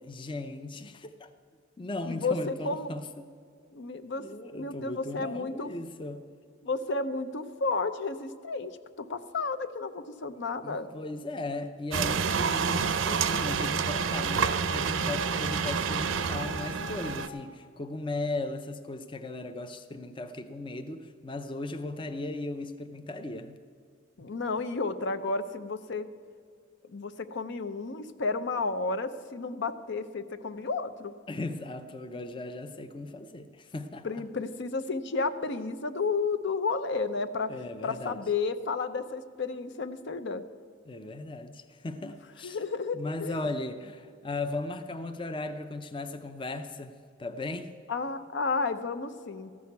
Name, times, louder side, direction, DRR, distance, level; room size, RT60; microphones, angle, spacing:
voice 1, 0.0-1.3 1.8-3.2 4.2-6.3 10.6-23.6 31.3-34.1 37.5-38.2 40.9-42.6 42.9-47.8, left 2 dB, 25° left, 0.5 m, -37 dB
voice 2, 2.0-2.9 3.7-4.3 4.5-5.7 6.6-10.9 24.2-26.1 26.9-31.1 34.0-37.5 37.8-40.4 42.0-42.1 42.4-43.4 47.9-49.5, left 4 dB, 65° left, 0.7 m, -32 dB
sound 1, 11.9-17.3, right 6 dB, 75° right, 0.6 m, -28 dB
14.0 x 6.3 x 9.3 m
head